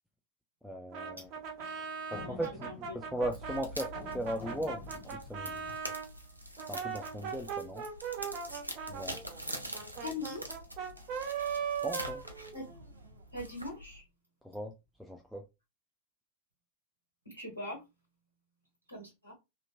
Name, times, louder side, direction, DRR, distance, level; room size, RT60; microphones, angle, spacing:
voice 1, 0.6-1.3 2.1-4.8 5.1-5.8 6.7-7.9 8.9-9.2 11.8-12.2 14.4-14.7 15.0-15.4, right 1 dB, ahead, 0.4 m, -38 dB
Brass instrument, 0.9-6.1 6.6-12.9, right 7 dB, 40° right, 0.7 m, -39 dB
sound 1, 1.2-6.0, left 4 dB, 40° left, 0.9 m, -50 dB
voice 2, 2.6-3.0 10.0-10.5 12.5-12.7 13.3-14.0 17.2-17.8 18.9-19.3, left 2 dB, 80° left, 1.1 m, -41 dB
sound 2, 3.2-14.0, equal, 85° right, 0.5 m, -45 dB
2.9 x 2.5 x 2.4 m
figure-of-eight pair, 90°, 0 cm